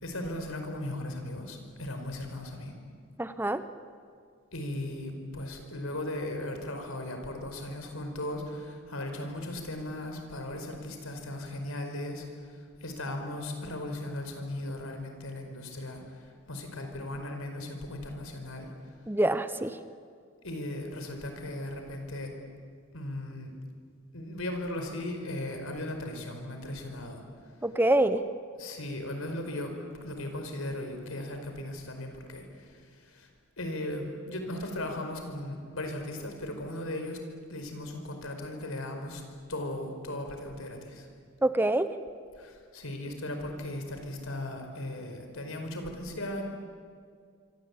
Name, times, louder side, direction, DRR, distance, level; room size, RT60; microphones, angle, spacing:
voice 1, 0.0-2.7 4.5-18.7 20.4-22.3 22.9-23.5 24.1-27.2 28.1-28.2 28.6-33.3 33.6-37.2 37.5-39.2 39.5-41.1 42.4-46.4, left 1 dB, 90° left, 5 dB, 5.0 m, -37 dB
voice 2, 3.2-3.6 19.1-19.8 27.6-28.2 41.4-41.9, right 1 dB, 10° right, 11 dB, 0.8 m, -25 dB
26.0 x 25.0 x 8.6 m, 2.1 s
head